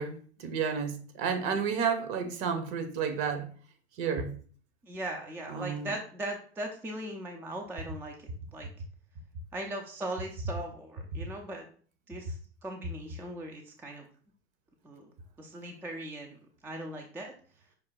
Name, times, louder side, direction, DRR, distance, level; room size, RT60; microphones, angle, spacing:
voice 1, 0.0-3.5 4.0-4.3 5.5-5.9, right 6 dB, 45° right, 1.0 m, -31 dB
voice 2, 4.8-8.7 9.5-11.7 12.1-14.1 14.8-15.1 15.4-17.3, right 1 dB, 5° right, 0.4 m, -39 dB
5.4 x 2.2 x 3.9 m
hypercardioid pair, 105°, 34 cm